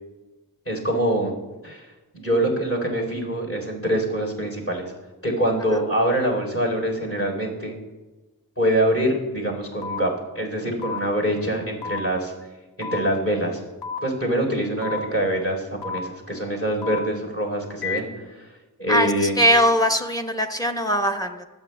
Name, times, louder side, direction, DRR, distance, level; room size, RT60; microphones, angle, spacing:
voice 1, 0.7-1.3 1.6-1.9 2.1-4.9 5.2-7.8 8.6-12.3 12.8-13.6 14.0-18.5 18.8-19.3, right 1 dB, 35° left, -2 dB, 4.0 m, -24 dB
sound 1, 9.8-10.0 10.8-11.0 11.8-12.0 12.8-13.0 13.8-14.0 14.8-15.0 15.8-16.0 16.8-17.0 17.8-18.0, left 7 dB, 75° left, 1.2 m, -30 dB
voice 2, 18.9-21.4, equal, 10° left, 5 dB, 1.1 m, -21 dB
24.5 x 8.5 x 2.3 m, 1.2 s
cardioid pair, 45°, 38 cm